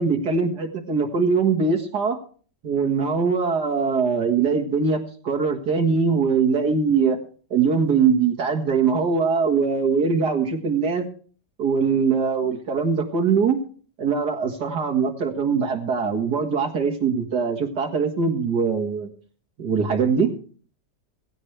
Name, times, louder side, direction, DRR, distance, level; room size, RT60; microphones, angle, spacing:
voice 1, 0.0-2.2 2.6-7.2 7.5-11.1 11.6-13.6 14.0-19.1 19.6-20.3, right 5 dB, 70° right, 2 dB, 2.2 m, -22 dB
16.5 x 16.5 x 3.3 m, 0.41 s
omnidirectional pair, 1.8 m